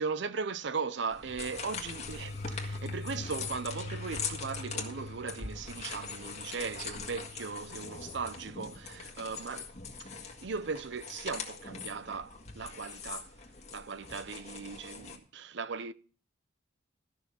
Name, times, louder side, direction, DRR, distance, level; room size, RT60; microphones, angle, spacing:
voice 1, 0.0-9.7 10.0-13.3 13.7-15.9, right 5 dB, 60° right, 0.6 m, -38 dB
sound 1, 1.1-15.2, left 5 dB, 35° left, 1.7 m, -42 dB
sound 2, 1.3-11.1, left 2 dB, 55° left, 0.6 m, -44 dB
14.0 x 6.0 x 6.9 m
head